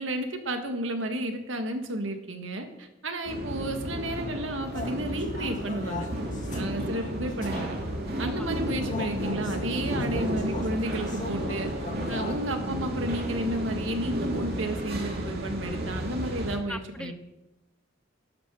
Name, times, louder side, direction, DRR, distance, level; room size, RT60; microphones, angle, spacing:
voice 1, 0.0-6.1 6.5-7.7 8.2-11.7 12.1-17.1, right 1 dB, 90° right, 5 dB, 1.6 m, -32 dB
sound 1, 3.2-16.6, right 1 dB, 55° right, 2.3 m, -32 dB
sound 2, 4.7-12.3, left 2 dB, 40° left, 1.5 m, -40 dB
voice 2, 16.7-17.1, left 1 dB, 5° left, 11 dB, 0.5 m, -38 dB
12.5 x 7.9 x 6.1 m, 0.96 s
head